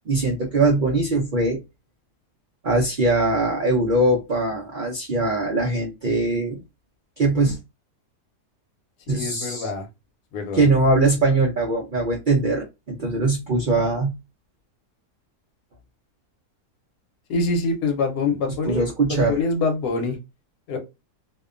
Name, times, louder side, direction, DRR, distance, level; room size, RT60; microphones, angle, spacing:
voice 1, 0.0-1.6 2.6-6.6 7.2-7.6 9.1-9.7 10.5-14.1 18.6-19.4, right 2 dB, 80° right, 0 dB, 0.4 m, -21 dB
voice 2, 9.1-9.9 10.3-10.7 17.3-20.2 20.7-20.8, left 3 dB, 90° left, 4 dB, 1.2 m, -25 dB
2.8 x 2.1 x 2.4 m, 0.23 s
omnidirectional pair, 1.7 m